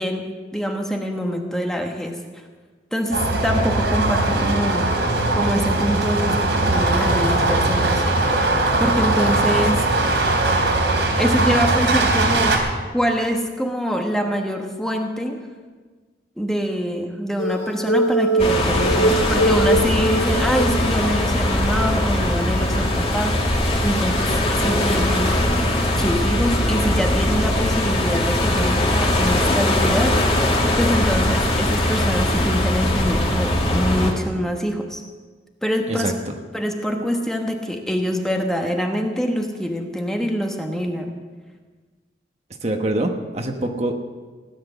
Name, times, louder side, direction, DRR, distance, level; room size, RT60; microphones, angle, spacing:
voice 1, 0.0-2.2 2.9-5.0 5.3-8.0 8.8-9.9 11.2-12.6 12.9-15.4 16.4-23.4 23.8-25.4 26.0-30.2 30.8-35.0 35.6-36.1 36.5-41.1, equal, 5° left, 2 dB, 1.2 m, -24 dB
sound 1, 3.1-12.6, right 2 dB, 80° right, 3.3 m, -20 dB
sound 2, 17.4-21.2 21.7-21.8 22.2-22.3, right 2 dB, 90° left, 2.4 m, -22 dB
sound 3, 18.4-34.1, left 1 dB, 30° left, 2.3 m, -20 dB
voice 2, 35.9-36.3 42.6-43.9, right 1 dB, 35° right, 4 dB, 1.2 m, -25 dB
17.0 x 10.5 x 6.9 m, 1.4 s
head